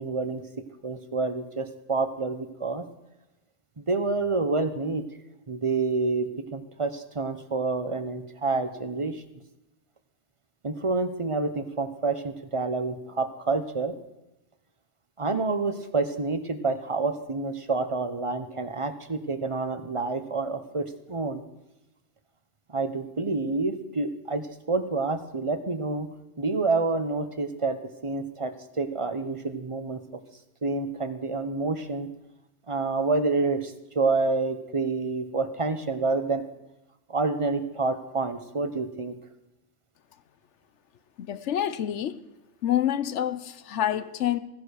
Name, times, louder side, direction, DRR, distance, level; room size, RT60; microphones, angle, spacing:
voice 1, 0.0-2.8 3.8-5.0 5.5-9.2 10.6-13.9 15.2-21.4 22.7-26.1 26.4-30.2 30.6-32.1 32.7-36.4 37.1-39.1, right 3 dB, 30° right, 0.9 m, -28 dB
voice 2, 41.2-42.2 42.6-44.4, left 11 dB, 75° left, 1.0 m, -27 dB
15.5 x 10.0 x 6.4 m
omnidirectional pair, 1.3 m